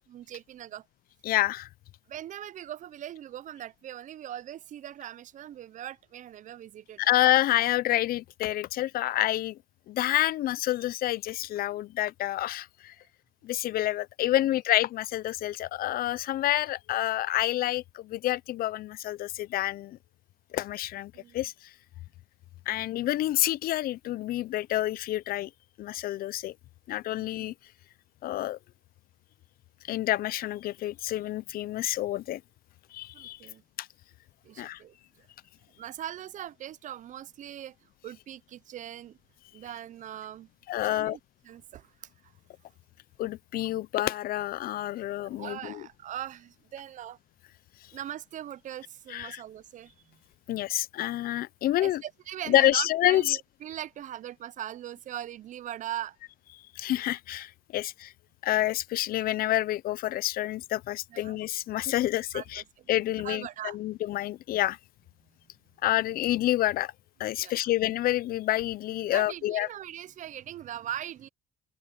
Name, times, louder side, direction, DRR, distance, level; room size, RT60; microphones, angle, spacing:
voice 1, 0.1-0.9 2.1-7.2 21.1-21.4 27.2-27.3 33.1-33.6 34.4-35.3 35.8-39.2 39.5-40.5 40.8-41.2 41.4-42.3 45.2-47.2 47.9-50.2 51.8-56.2 61.1-61.4 62.3-62.9 63.2-63.8 67.4-67.5 69.1-71.3, right 11 dB, 50° right, 0.5 m, -40 dB
voice 2, 1.2-1.7 7.0-9.6 9.9-12.9 13.4-20.0 20.5-21.5 22.7-25.5 25.8-26.5 26.9-27.5 28.2-28.6 29.9-32.4 32.9-33.4 33.8-33.9 34.6-34.8 40.7-41.2 43.2-45.8 49.1-49.4 50.5-52.0 52.5-53.4 56.8-58.1 58.4-62.6 62.9-64.8 65.8-66.9 67.2-69.7, left 14 dB, 60° left, 0.5 m, -28 dB
open air
cardioid pair, 110°, 17 cm